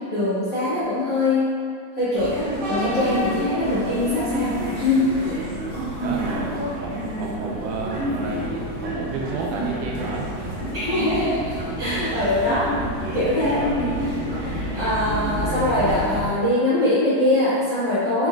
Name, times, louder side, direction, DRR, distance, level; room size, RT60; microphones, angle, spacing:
voice 1, 0.1-1.5 1.9-5.1 6.6-6.7 10.7-11.4 11.8-12.7 13.1-13.6 14.0-18.3, left 1 dB, 50° left, -15 dB, 0.9 m, -23 dB
sound 1, 2.2-16.3, equal, 65° right, 1.9 m, -28 dB
voice 2, 6.0-10.3, right 3 dB, 80° right, -2 dB, 2.0 m, -31 dB
5.7 x 3.8 x 2.3 m, 2.3 s
omnidirectional pair, 3.7 m